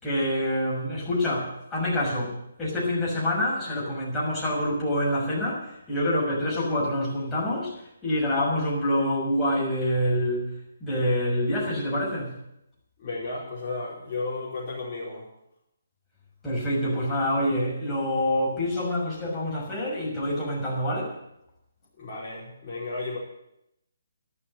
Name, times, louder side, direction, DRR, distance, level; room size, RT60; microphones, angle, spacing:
voice 1, 0.0-7.7 8.0-10.5 10.8-12.3 16.4-21.1, left 1 dB, 5° left, -7 dB, 6.2 m, -26 dB
voice 2, 13.0-15.3 22.0-23.2, left 3 dB, 30° left, -8 dB, 4.7 m, -33 dB
12.5 x 12.0 x 7.9 m, 0.81 s
figure-of-eight pair, 140°, 0 cm